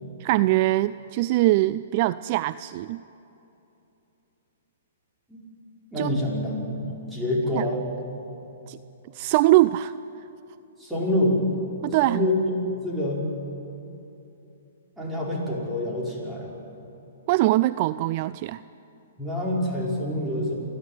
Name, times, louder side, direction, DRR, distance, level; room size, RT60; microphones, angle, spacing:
voice 1, 0.2-3.0 6.0-6.1 7.5-7.7 8.7-8.8 9.1-9.9 11.8-12.2 17.3-18.6, right 17 dB, 45° right, 16 dB, 0.4 m, -22 dB
voice 2, 5.9-7.8 10.8-11.5 12.0-13.2 15.0-16.5 19.2-20.5, left 1 dB, 5° right, -5 dB, 5.5 m, -26 dB
29.0 x 11.5 x 9.4 m, 2.9 s
hypercardioid pair, 135°, 0 cm